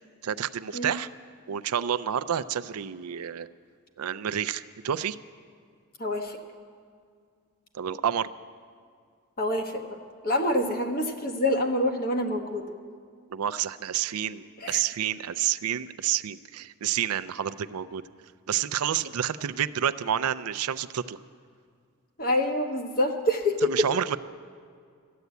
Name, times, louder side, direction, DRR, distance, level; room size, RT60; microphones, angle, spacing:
voice 1, 0.2-1.1 1.5-3.5 4.0-5.2 7.7-8.3 13.3-18.0 18.5-21.2 23.6-24.2, right 9 dB, 90° right, 12 dB, 0.4 m, -29 dB
voice 2, 6.0-6.4 9.4-12.7 14.6-14.8 22.2-23.9, left 1 dB, 40° left, 4 dB, 1.1 m, -26 dB
13.5 x 9.5 x 8.1 m, 2.1 s
head